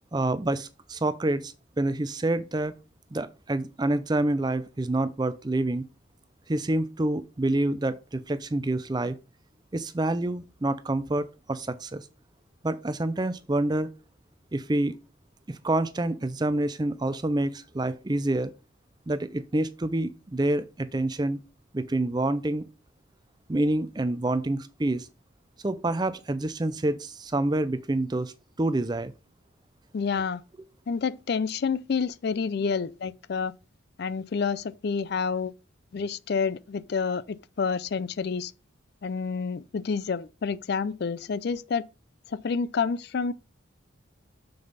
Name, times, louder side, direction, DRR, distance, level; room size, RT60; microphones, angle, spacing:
voice 1, 0.1-2.7 3.1-5.8 6.5-9.2 9.7-12.0 12.6-13.9 14.5-15.0 15.5-18.5 19.1-21.4 21.7-22.7 23.5-25.1 25.6-28.3 28.6-29.1, right 2 dB, 20° right, 0.5 m, -27 dB
voice 2, 29.9-30.4 30.9-33.5 34.0-35.5 35.9-38.5 39.0-41.8 42.4-43.3, left 5 dB, 50° left, 0.4 m, -28 dB
7.0 x 6.4 x 4.0 m
head